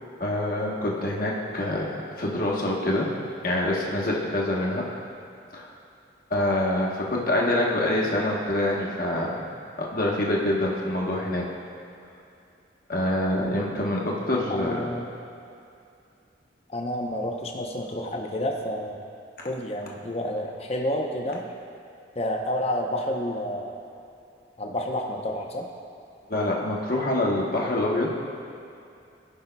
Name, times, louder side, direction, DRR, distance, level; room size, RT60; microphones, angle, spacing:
voice 1, 0.2-3.1 3.4-4.9 5.5-5.7 6.3-9.5 9.8-11.5 12.9-14.8 26.3-28.1, left 1 dB, 50° left, -3 dB, 1.1 m, -26 dB
voice 2, 14.5-15.1 16.7-19.0 19.4-21.4 22.1-23.8 24.6-25.7, left 1 dB, 35° left, 1 dB, 0.7 m, -29 dB
16.0 x 5.5 x 2.3 m, 2.6 s
head